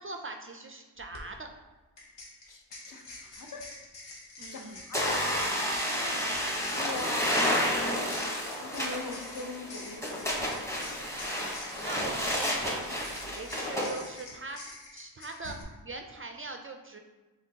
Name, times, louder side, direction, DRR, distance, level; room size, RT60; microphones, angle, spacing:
voice 1, 0.0-1.5 4.4-4.9 11.8-17.0, right 3 dB, 30° right, 4 dB, 0.4 m, -41 dB
sound 1, 1.0-1.2 2.0-15.6, left 2 dB, 85° left, 0.8 m, -47 dB
voice 2, 2.4-3.7 4.5-5.3 6.7-7.6 8.6-10.7, left 3 dB, 45° left, 1 dB, 0.8 m, -41 dB
sound 2, 4.9-13.9, equal, 5° left, 0.9 m, -31 dB
5.0 x 3.2 x 2.8 m, 1.2 s
cardioid pair, 55°, 43 cm